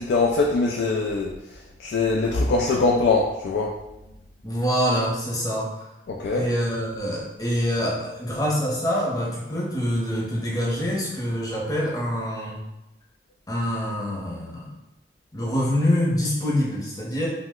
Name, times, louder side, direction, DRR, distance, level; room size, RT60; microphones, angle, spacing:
voice 1, 0.0-3.7 6.1-6.5, left 3 dB, 75° left, -1 dB, 0.3 m, -23 dB
voice 2, 4.4-5.9 6.3-12.7 13.5-14.7 15.3-17.3, equal, 20° left, -5 dB, 0.7 m, -25 dB
2.8 x 2.1 x 3.5 m, 0.94 s
head